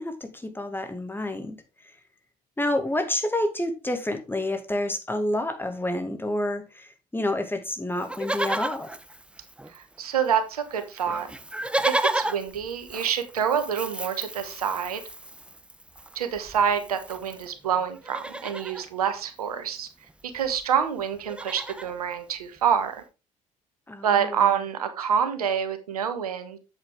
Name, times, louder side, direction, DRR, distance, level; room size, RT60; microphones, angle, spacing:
voice 1, 0.0-2.0 2.6-9.0 23.9-24.4, left 1 dB, 10° left, 2.2 m, -29 dB
Livestock farm animals working animals, 8.0-10.0 10.2-10.3 10.6-17.5 17.9-18.9 20.1-20.2 20.4-20.6 21.0-21.9 22.6-22.7, right 1 dB, 5° right, 0.8 m, -33 dB
voice 2, 9.7-11.3 11.8-15.0 16.1-19.9 20.3-23.0 24.0-26.6, right 8 dB, 90° right, 1.2 m, -27 dB
8.1 x 7.9 x 3.6 m
hypercardioid pair, 60°, 19 cm